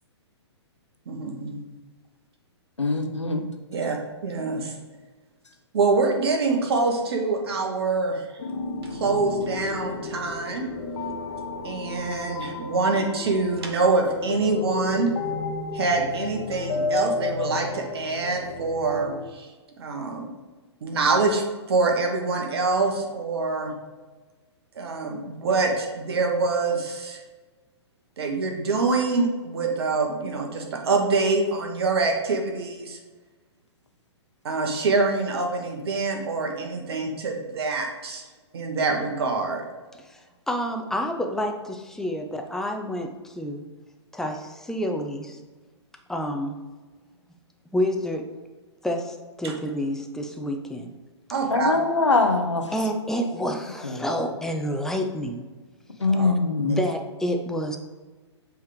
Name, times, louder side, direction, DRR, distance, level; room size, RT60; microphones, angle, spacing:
voice 1, 1.1-1.7 3.7-4.7 5.7-8.2 8.9-10.6 11.6-15.1 15.7-19.5 19.8-20.3 20.8-21.4 21.7-23.7 24.7-27.2 28.2-33.0 34.4-38.2 38.5-39.6 49.4-49.5 51.3-51.7 56.1-56.3, right 3 dB, 60° right, 1 dB, 1.2 m, -25 dB
voice 2, 2.8-3.5 51.5-52.6 53.8-54.0 56.0-56.8, left 3 dB, 90° left, 4 dB, 1.0 m, -22 dB
sound 1, 8.4-19.2, left 4 dB, 60° left, 1.0 m, -32 dB
voice 3, 40.5-43.7 44.1-45.4 46.1-46.6 47.7-48.2 48.8-51.0 52.7-55.4 56.2-56.3 56.6-57.8, equal, 5° left, 3 dB, 0.6 m, -29 dB
7.9 x 3.5 x 5.0 m, 1.3 s
figure-of-eight pair, 120°, 15 cm